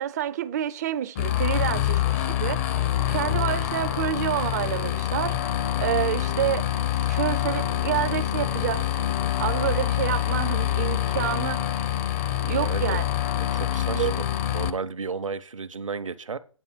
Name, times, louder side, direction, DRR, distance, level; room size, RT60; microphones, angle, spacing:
voice 1, 0.0-6.7 7.0-9.1 9.4-11.6 12.5-13.1 13.9-14.1, right 11 dB, 30° right, 0.5 m, -28 dB
sound 1, 1.2-14.7, left 12 dB, 25° left, 0.7 m, -26 dB
voice 2, 12.4-13.0 13.4-16.4, right 5 dB, 70° right, 1.0 m, -33 dB
9.2 x 7.0 x 4.5 m
figure-of-eight pair, 135°, 17 cm